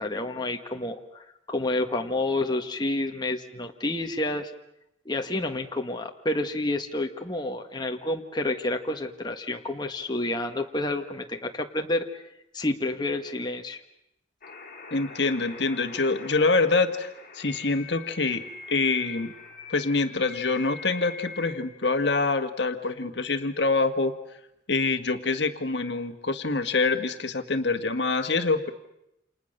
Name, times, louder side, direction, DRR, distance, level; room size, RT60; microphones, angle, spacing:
voice 1, 0.0-4.5 5.0-12.2 12.5-13.8, left 2 dB, 25° left, 3 dB, 1.5 m, -29 dB
sound 1, 14.4-21.5, left 4 dB, 45° left, 4.0 m, -43 dB
voice 2, 14.9-17.1 17.3-19.3 19.7-24.1 24.7-28.7, left 3 dB, 65° left, 7 dB, 1.6 m, -25 dB
29.5 x 28.0 x 6.7 m, 0.82 s
head